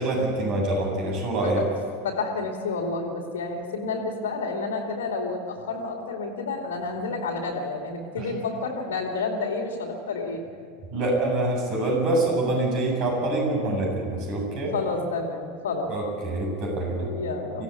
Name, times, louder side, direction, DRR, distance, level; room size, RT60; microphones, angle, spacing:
voice 1, 0.0-1.6 8.2-8.3 10.9-14.8 15.9-17.1 17.5-17.6, right 2 dB, 45° right, 0 dB, 7.8 m, -25 dB
voice 2, 2.0-10.4 14.7-15.9 16.9-17.6, left 3 dB, 65° left, 2 dB, 2.7 m, -30 dB
24.0 x 17.5 x 8.6 m, 2.2 s
figure-of-eight pair, 80°, 0 cm